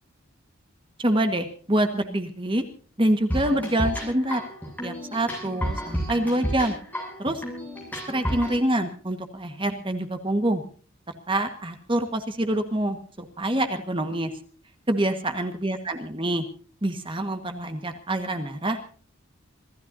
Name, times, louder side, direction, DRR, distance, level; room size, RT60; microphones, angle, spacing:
voice 1, 1.0-2.6 3.0-4.4 4.8-6.8 7.2-7.4 8.1-10.6 11.3-14.3 14.9-16.4 16.8-19.0, right 1 dB, 25° right, 7 dB, 1.5 m, -26 dB
sound 1, 3.3-8.6, equal, 10° left, 7.6 m, -31 dB
26.5 x 16.0 x 2.7 m, 0.41 s
head